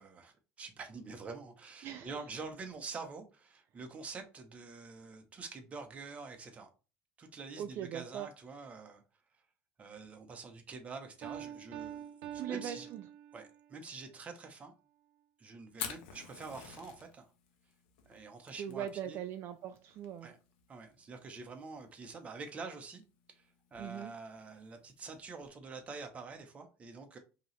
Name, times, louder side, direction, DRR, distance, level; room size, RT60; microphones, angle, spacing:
voice 1, 0.0-6.7 7.2-9.0 9.8-12.9 13.3-14.7 15.4-17.3 18.1-19.2 20.2-20.4 20.7-23.0 23.3-27.2, right 4 dB, 25° right, 0.9 m, -46 dB
voice 2, 1.8-2.2 7.6-8.3 12.3-13.0 18.5-20.3 23.8-24.1, right 9 dB, 45° right, 0.4 m, -40 dB
Piano, 11.2-13.7, right 10 dB, 90° right, 0.8 m, -45 dB
Fire, 15.7-25.5, left 8 dB, 90° left, 1.0 m, -50 dB
5.3 x 2.9 x 3.2 m
cardioid pair, 140°, 6 cm